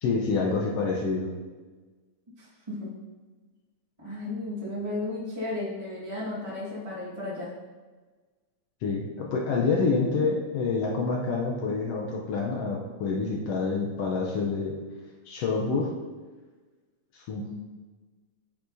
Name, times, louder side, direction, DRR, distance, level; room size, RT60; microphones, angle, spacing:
voice 1, 0.0-1.3 8.8-14.8 15.3-15.9 17.1-17.5, left 4 dB, 75° left, -2 dB, 1.5 m, -27 dB
voice 2, 2.4-2.9 4.0-7.5 17.4-17.5, left 2 dB, 25° right, -8 dB, 0.6 m, -34 dB
8.6 x 5.9 x 2.7 m, 1.3 s
omnidirectional pair, 3.5 m